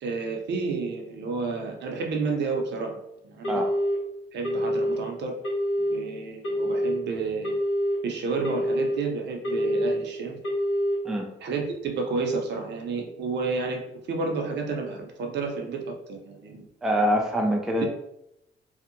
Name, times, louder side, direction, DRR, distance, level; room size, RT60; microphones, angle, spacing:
voice 1, 0.0-3.6 4.3-5.3 5.8-7.5 8.0-10.4 11.4-16.6 17.8-17.9, right 4 dB, 60° right, 3 dB, 0.5 m, -31 dB
Telephone, 3.4-4.0 4.4-5.0 5.4-6.0 6.4-7.0 7.4-8.0 8.4-9.0 9.4-10.0 10.4-11.0, equal, 80° left, 1.1 m, -25 dB
voice 2, 16.8-17.9, equal, 5° right, 2 dB, 0.3 m, -24 dB
2.7 x 2.1 x 2.5 m, 0.82 s
cardioid pair, 90°, 20 cm